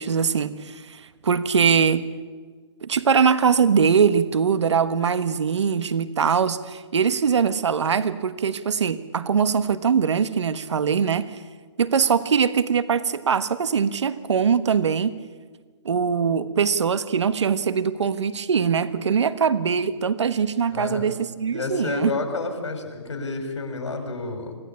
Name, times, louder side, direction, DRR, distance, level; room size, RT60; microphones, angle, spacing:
voice 1, 0.0-2.1 2.8-11.4 11.8-15.1 15.8-22.1, right 6 dB, 75° right, 13 dB, 1.3 m, -22 dB
voice 2, 20.7-21.1 21.5-24.6, left 3 dB, 85° left, 5 dB, 5.8 m, -30 dB
25.0 x 15.5 x 8.7 m, 1.5 s
hypercardioid pair, 165°, 15 cm